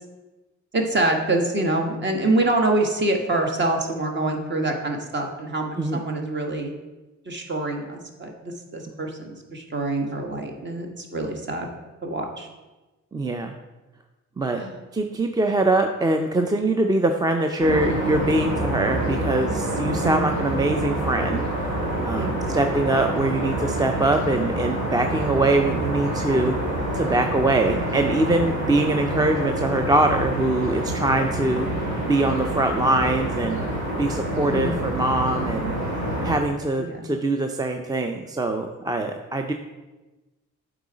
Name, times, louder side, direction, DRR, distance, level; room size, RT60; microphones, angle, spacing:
voice 1, 0.7-6.7 7.2-11.7 12.0-12.5 14.6-14.7 19.8-20.2 22.1-22.7 27.6-27.8 34.5-34.9 36.8-37.1, right 2 dB, 35° right, 3 dB, 1.3 m, -26 dB
voice 2, 13.1-13.5 14.4-14.6 14.9-21.7 22.0-26.5 26.9-31.7 32.0-33.6 34.0-35.7 36.2-39.5, right 2 dB, 15° right, 5 dB, 0.5 m, -23 dB
sound 1, 17.6-36.4, right 1 dB, 80° right, 2.2 m, -27 dB
8.1 x 3.9 x 5.0 m, 1.1 s
cardioid pair, 90°, 30 cm